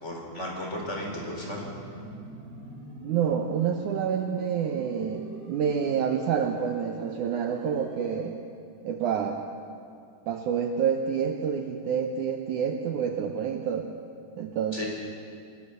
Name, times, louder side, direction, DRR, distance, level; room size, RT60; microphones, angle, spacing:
voice 1, 0.0-1.7 14.7-14.9, left 1 dB, 15° left, -1 dB, 4.3 m, -34 dB
sound 1, 0.8-8.2, right 1 dB, 60° right, 5.9 m, -43 dB
voice 2, 3.0-8.4 8.8-9.4 10.3-13.9 14.4-14.8, right 7 dB, 85° right, 4 dB, 1.7 m, -28 dB
29.5 x 20.5 x 6.8 m, 2.3 s
omnidirectional pair, 5.0 m